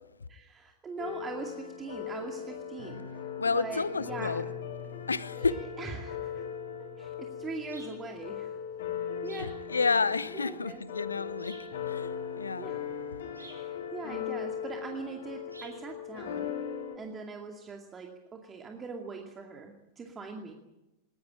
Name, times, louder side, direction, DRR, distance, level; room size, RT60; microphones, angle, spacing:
voice 1, 0.3-3.0 3.5-4.4 5.3-6.5 6.8-8.6 9.2-9.6 10.3-10.8 12.6-12.8 13.4-16.5 17.0-20.5, right 4 dB, 20° right, 2 dB, 2.4 m, -41 dB
sound 1, 1.0-16.9, left 8 dB, 60° left, 5.9 m, -38 dB
voice 2, 3.4-4.4 5.1-5.5 9.4-11.6 11.9-12.1 12.4-12.7, left 4 dB, 75° left, 19 dB, 0.9 m, -30 dB
sound 2, 7.7-8.0 9.2-9.6 11.4-11.7 13.3-13.7 15.5-15.8, right 2 dB, 85° right, 4.3 m, -50 dB
20.0 x 19.5 x 8.9 m, 0.99 s
figure-of-eight pair, 90°, 0 cm